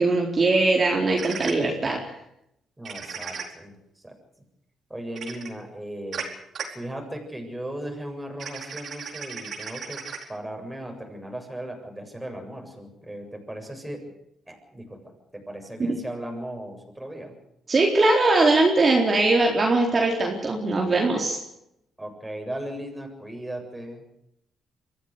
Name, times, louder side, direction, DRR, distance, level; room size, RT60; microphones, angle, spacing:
voice 1, 0.0-2.0 15.8-16.0 17.7-21.4, right 2 dB, 35° right, 0 dB, 4.3 m, -21 dB
sound 1, 1.2-1.5 2.8-3.4 5.2-5.5 6.1-6.2 6.5-6.6 8.4-10.2, right 6 dB, 60° right, 4.4 m, -35 dB
voice 2, 2.8-3.7 4.0-4.2 4.9-6.3 6.7-10.0 10.3-14.0 14.5-17.3 22.0-24.0, right 1 dB, 10° right, 3 dB, 7.5 m, -37 dB
24.0 x 15.5 x 8.2 m, 0.80 s
cardioid pair, 90°, 0 cm